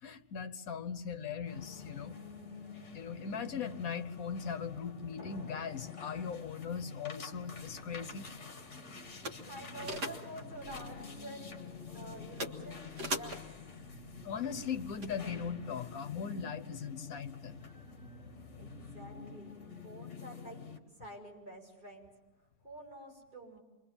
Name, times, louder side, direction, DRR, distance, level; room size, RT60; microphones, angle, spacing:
voice 1, 0.0-2.2 2.9-8.3 14.2-17.6, left 6 dB, 60° left, 10 dB, 1.5 m, -39 dB
sound 1, 1.5-20.8, left 5 dB, 45° left, 2.0 m, -47 dB
sound 2, 7.5-15.5, right 1 dB, 70° right, 2.4 m, -45 dB
voice 2, 8.7-13.4 18.6-20.6 21.0-22.1 22.6-23.6, right 1 dB, 30° right, -2 dB, 6.4 m, -49 dB
28.0 x 22.5 x 7.2 m, 1.1 s
omnidirectional pair, 1.8 m